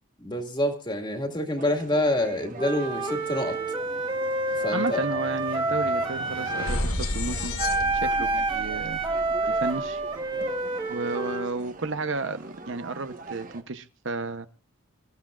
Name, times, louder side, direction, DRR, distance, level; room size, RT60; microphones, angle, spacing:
voice 1, 0.2-3.6 4.6-5.0, left 1 dB, 20° left, 5 dB, 2.1 m, -27 dB
sound 1, 1.6-13.6, right 2 dB, 40° right, 1.2 m, -44 dB
Wind instrument woodwind instrument, 2.6-6.8 7.6-11.5, right 2 dB, 25° right, 2.0 m, -28 dB
sound 2, 3.5-3.6 3.9-10.2, left 1 dB, 80° left, 1.6 m, -34 dB
voice 2, 4.7-7.5 8.0-9.0 9.5-10.0 10.9-14.5, right 3 dB, 60° right, 11 dB, 0.9 m, -32 dB
26.5 x 14.5 x 2.4 m, 0.31 s
head